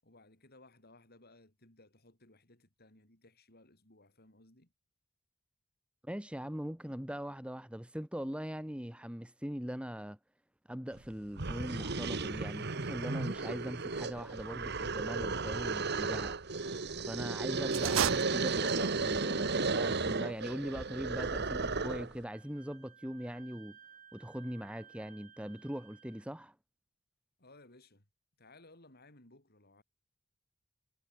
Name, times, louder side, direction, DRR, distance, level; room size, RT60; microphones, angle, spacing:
voice 1, 0.0-4.7 27.4-28.1 28.4-29.8, left 2 dB, 50° left, 7.1 m, -60 dB
voice 2, 6.0-10.2 10.7-16.4 17.0-23.8 24.1-26.5, equal, 5° right, 1.6 m, -41 dB
sound 1, 11.0-11.1 11.4-22.2, right 3 dB, 55° right, 1.6 m, -34 dB
sound 2, 17.7-19.0, right 9 dB, 80° right, 0.6 m, -33 dB
Wind instrument woodwind instrument, 22.3-26.3, right 7 dB, 40° right, 3.9 m, -58 dB
head